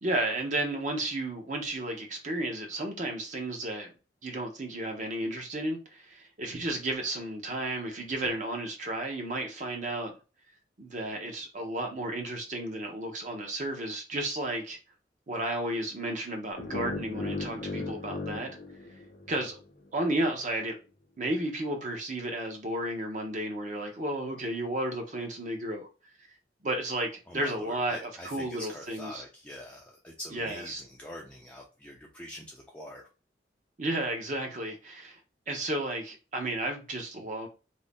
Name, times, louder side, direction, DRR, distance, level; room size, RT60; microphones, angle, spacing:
voice 1, 0.0-3.9 4.2-10.1 10.8-14.8 15.3-18.5 19.3-19.6 19.9-20.8 21.2-25.9 26.6-29.2 30.3-30.8 33.8-35.2 35.5-37.5, right 1 dB, 45° right, 0.7 m, -33 dB
sound 1, 16.6-19.6, left 2 dB, 55° left, 0.5 m, -37 dB
voice 2, 27.3-33.1, left 1 dB, 5° left, 0.4 m, -45 dB
2.6 x 2.0 x 3.4 m
head